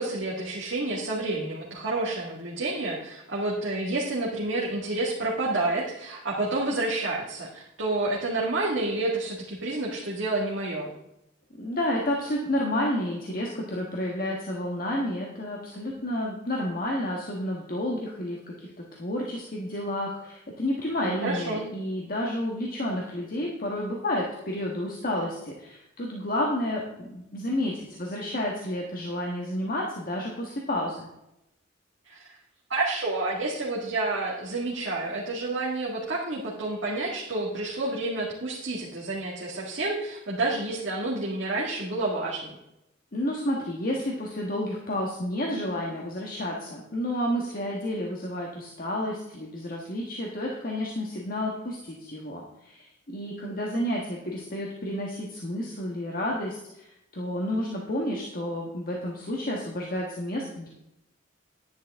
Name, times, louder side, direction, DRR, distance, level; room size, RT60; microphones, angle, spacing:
voice 1, 0.0-10.9 21.0-21.7 32.0-32.4 32.7-42.5, right 2 dB, 65° right, -5 dB, 1.9 m, -29 dB
voice 2, 11.6-18.7 19.0-31.1 43.1-60.7, left 1 dB, 45° left, -1 dB, 1.4 m, -30 dB
10.5 x 10.5 x 3.6 m, 0.87 s
head